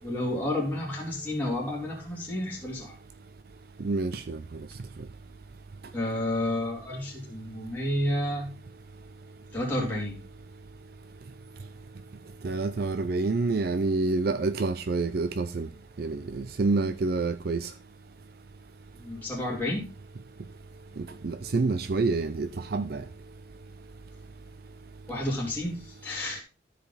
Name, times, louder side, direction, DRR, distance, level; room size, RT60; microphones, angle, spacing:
voice 1, 0.0-2.9 5.9-8.5 9.5-10.2 19.0-19.9 25.1-26.4, left 1 dB, 10° left, 2.7 m, -30 dB
voice 2, 3.8-4.4 12.4-15.7 16.0-17.7 21.0-23.0, right 3 dB, 50° right, 0.4 m, -28 dB
13.5 x 5.0 x 4.0 m
head